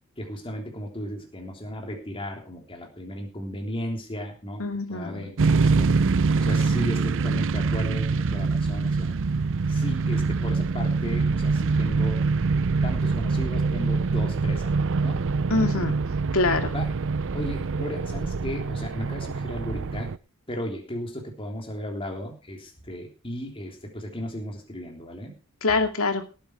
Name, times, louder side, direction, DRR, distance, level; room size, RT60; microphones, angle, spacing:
voice 1, 0.2-4.6 4.9-5.9 6.3-9.1 9.7-12.2 12.8-14.8 15.0-15.2 15.5-15.9 16.7-16.9 17.3-20.1 20.5-25.4, equal, 25° left, 1 dB, 3.5 m, -35 dB
voice 2, 4.6-5.2 15.5-15.9 16.3-16.7 25.6-26.2, left 3 dB, 70° left, 6 dB, 2.5 m, -24 dB
sound 1, 5.4-20.2, right 4 dB, 60° right, 0.6 m, -24 dB
18.0 x 9.2 x 4.6 m, 0.34 s
head